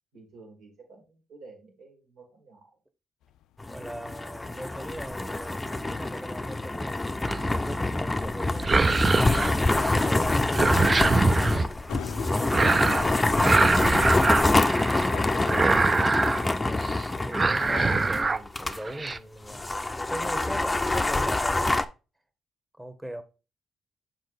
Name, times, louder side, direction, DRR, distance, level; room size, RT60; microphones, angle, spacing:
voice 1, 0.1-2.7 12.3-15.5, right 3 dB, 75° right, 2.4 m, -47 dB
sound 1, 3.2-3.5 3.7-4.0 4.2-6.5 6.9-7.2 7.5-7.7 8.0-8.2 8.4-11.3 11.9-14.7 15.1-18.2, left 11 dB, 80° left, 0.3 m, -42 dB
sound 2, 3.6-18.8 19.1-19.2 19.5-21.8, left 2 dB, 20° left, 0.5 m, -26 dB
voice 2, 3.6-8.8 9.1-10.4 15.8-21.8 22.8-23.2, right 1 dB, 15° right, 1.2 m, -40 dB
sound 3, 7.3-7.7 8.5-10.1 10.3-11.7 12.5-13.1 13.4-15.1 15.5-16.5 16.8-17.0 17.3-18.4 18.7-19.2, right 3 dB, 35° right, 0.4 m, -24 dB
6.4 x 4.5 x 4.1 m
supercardioid pair, 60°, 0 cm